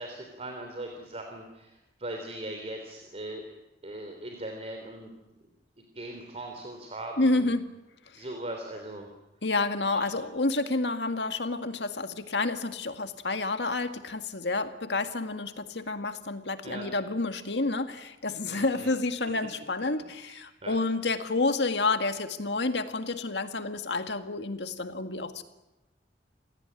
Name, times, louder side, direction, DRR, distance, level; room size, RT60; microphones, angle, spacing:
voice 1, 0.0-3.4 3.8-5.1 5.9-7.5 8.2-9.1 9.9-10.0 16.6-16.9 18.5-18.9 20.2-20.8, right 1 dB, 35° right, 4 dB, 3.3 m, -40 dB
voice 2, 7.2-7.7 8.1-8.3 9.4-25.4, left 3 dB, 75° left, 8 dB, 2.0 m, -29 dB
28.0 x 17.5 x 9.9 m, 1.0 s
head